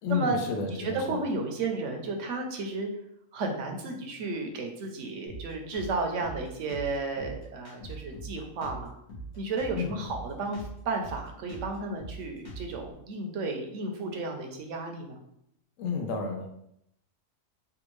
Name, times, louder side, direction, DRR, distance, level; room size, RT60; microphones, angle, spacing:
voice 1, 0.0-1.2 9.7-10.0 15.8-16.5, left 5 dB, 85° left, 4 dB, 1.0 m, -31 dB
voice 2, 0.7-2.9 3.3-9.0 9.4-15.2, right 3 dB, 70° right, 3 dB, 0.9 m, -33 dB
Drum kit, 5.3-12.9, right 2 dB, 65° left, 1.5 m, -42 dB
3.4 x 2.3 x 3.0 m, 0.74 s
omnidirectional pair, 1.3 m